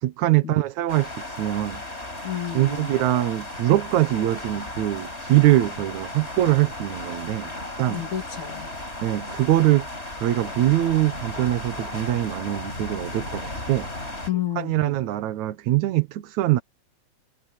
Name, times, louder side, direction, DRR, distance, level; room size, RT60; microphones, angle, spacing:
voice 1, 0.0-1.8 2.5-7.5 7.8-8.0 9.0-9.9 10.2-13.9 14.6-16.6, right 15 dB, 75° right, 2.4 m, -23 dB
sound 1, 0.9-14.3, left 1 dB, 20° left, 5.3 m, -35 dB
voice 2, 2.2-3.1 7.9-8.7 14.3-15.0, left 11 dB, 80° left, 4.3 m, -31 dB
omnidirectional pair, 3.3 m